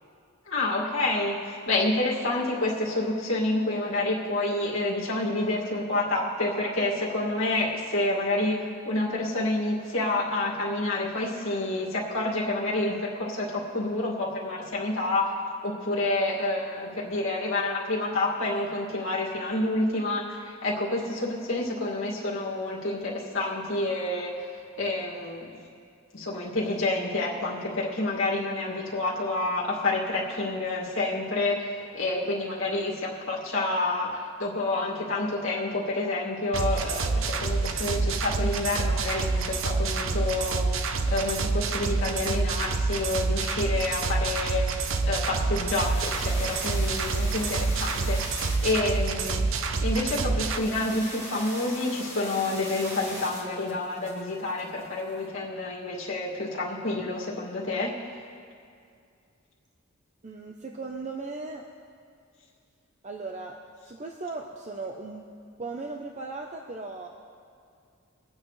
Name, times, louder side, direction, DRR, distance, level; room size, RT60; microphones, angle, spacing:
voice 1, 0.5-15.4 15.6-25.6 26.1-49.5 49.8-58.0, left 2 dB, 70° left, -5 dB, 2.2 m, -28 dB
sound 1, 36.5-50.6, right 3 dB, 70° right, 0.7 m, -27 dB
sound 2, 45.8-55.2, equal, 15° right, 2.0 m, -41 dB
voice 2, 60.2-61.7 63.0-65.3 65.6-67.1, right 3 dB, 35° right, 1 dB, 0.7 m, -37 dB
24.0 x 8.8 x 3.2 m, 2.4 s
head